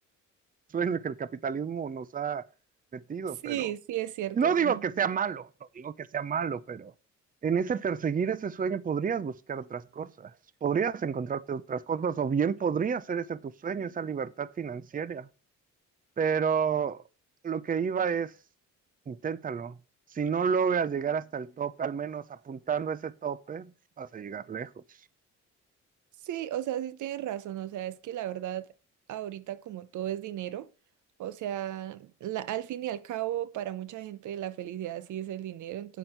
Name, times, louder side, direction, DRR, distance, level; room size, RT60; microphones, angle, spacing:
voice 1, 0.7-2.5 2.9-3.7 4.3-5.5 5.7-6.9 7.4-10.3 10.6-15.3 16.2-17.0 17.4-18.3 19.1-19.8 20.1-23.7 24.0-24.7, right 6 dB, 30° right, 0.7 m, -30 dB
voice 2, 3.4-4.8 26.2-28.7 29.1-30.7 31.2-36.0, right 12 dB, 75° right, 0.8 m, -35 dB
9.5 x 7.7 x 5.7 m
cardioid pair, 90°, 30 cm